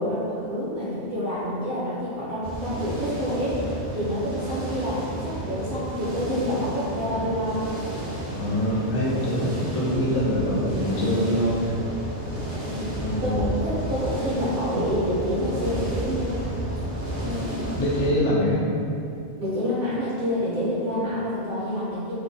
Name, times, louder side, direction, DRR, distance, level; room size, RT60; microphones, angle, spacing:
voice 1, 0.0-7.6 12.7-12.9 13.2-16.5 17.1-17.6 19.4-22.1, equal, 60° right, -9 dB, 0.7 m, -28 dB
sound 1, 2.4-18.1, right 1 dB, 30° right, 0.3 m, -32 dB
voice 2, 8.3-11.7 13.0-13.4 17.7-18.7, equal, 80° left, -5 dB, 0.9 m, -24 dB
2.4 x 2.1 x 2.5 m, 2.6 s
omnidirectional pair, 1.2 m